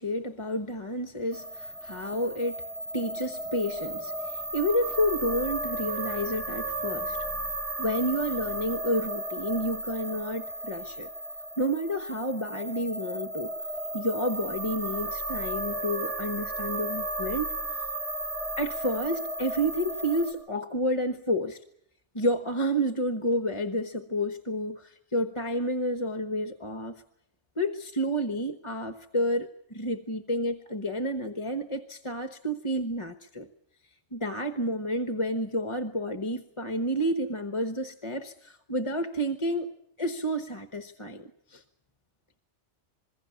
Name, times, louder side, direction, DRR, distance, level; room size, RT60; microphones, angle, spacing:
voice 1, 0.0-2.6 2.9-7.3 7.8-11.1 11.6-13.5 13.9-17.6 18.6-21.6 22.1-27.0 27.6-33.5 34.1-39.7 40.0-41.6, equal, 25° left, 9 dB, 1.2 m, -30 dB
sound 1, 1.3-20.3, right 2 dB, 75° right, 7.6 m, -34 dB
27.0 x 22.0 x 7.2 m, 0.74 s
omnidirectional pair, 1.2 m